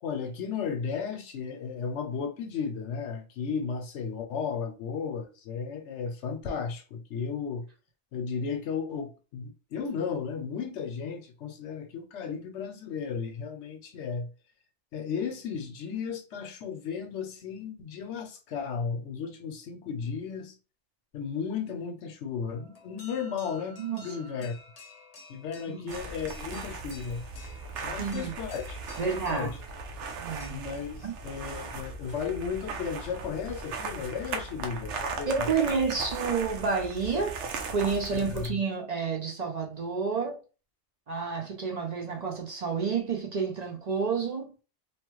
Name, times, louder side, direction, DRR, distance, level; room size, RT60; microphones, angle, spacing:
voice 1, 0.0-7.7 8.1-14.3 14.9-20.6 21.1-24.6 25.3-27.2 27.8-29.6 30.5-35.8 38.1-38.6, left 6 dB, 80° left, 0.9 m, -34 dB
sound 1, 22.5-30.5, left 3 dB, 45° left, 0.6 m, -51 dB
voice 2, 23.8-24.2 25.7-25.9 28.0-28.3 29.0-29.5 30.2-30.6 31.0-31.2 35.3-37.4 37.7-40.4 41.1-44.5, right 5 dB, 50° right, 0.5 m, -30 dB
sound 2, 25.9-38.5, right 4 dB, 80° right, 0.9 m, -38 dB
2.9 x 2.1 x 3.0 m
omnidirectional pair, 1.2 m